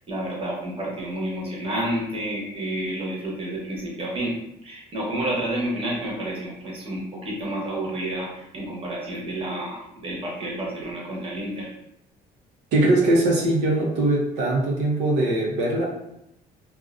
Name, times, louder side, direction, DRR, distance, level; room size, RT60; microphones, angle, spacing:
voice 1, 0.1-4.3 4.6-11.7, right 1 dB, 30° right, -4 dB, 0.9 m, -30 dB
voice 2, 12.7-15.9, right 2 dB, 80° right, -2 dB, 0.6 m, -21 dB
2.4 x 2.1 x 2.4 m, 0.80 s
cardioid pair, 110°, 17 cm